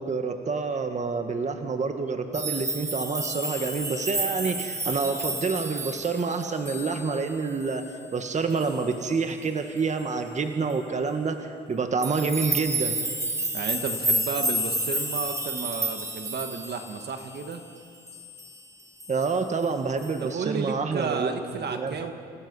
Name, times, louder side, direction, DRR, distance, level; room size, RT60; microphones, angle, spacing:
voice 1, 0.0-7.8 8.1-13.0 19.1-21.3 21.7-22.0, right 4 dB, 35° right, 6 dB, 1.6 m, -28 dB
sound 1, 2.3-7.3 7.6-7.9 8.6-8.8 12.0-17.7 18.1-18.6 19.0-19.4 20.0-20.1, right 1 dB, 15° right, 2.3 m, -31 dB
voice 2, 13.5-17.6 20.2-22.1, right 5 dB, 55° right, 6 dB, 1.7 m, -32 dB
29.5 x 16.5 x 5.5 m, 2.4 s
cardioid pair, 90°, 20 cm